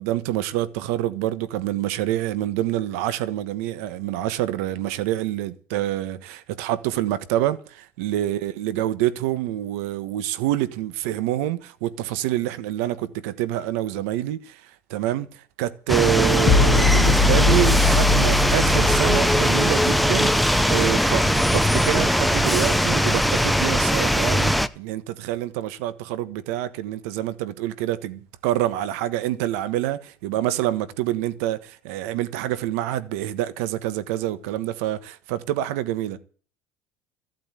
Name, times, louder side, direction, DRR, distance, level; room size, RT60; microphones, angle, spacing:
voice 1, 0.0-36.2, right 13 dB, 80° right, 1.4 m, -27 dB
sound 1, 15.9-24.7, equal, ahead, 0.6 m, -20 dB
sound 2, 16.5-19.9, left 4 dB, 30° left, 1.1 m, -21 dB
15.0 x 8.2 x 8.4 m
cardioid pair, 170°, 8 cm